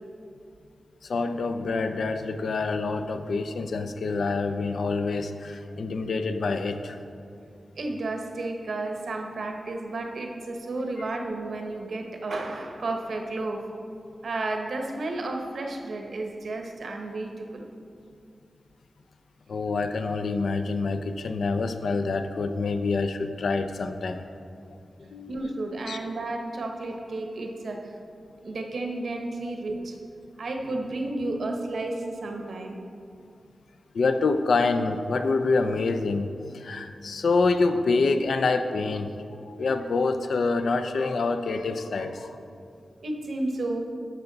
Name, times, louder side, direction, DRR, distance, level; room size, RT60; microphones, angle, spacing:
voice 1, 1.0-7.0 19.5-24.2 25.0-25.6 25.9-26.0 33.9-39.1 39.4-42.4, left 3 dB, 70° left, 8 dB, 0.5 m, -26 dB
voice 2, 7.8-13.6 14.2-17.7 25.3-27.9 28.4-30.0 30.4-32.8 43.0-43.8, right 2 dB, 65° right, 2 dB, 1.0 m, -32 dB
13.5 x 5.9 x 4.0 m, 2.5 s
wide cardioid pair, 165°, 0 cm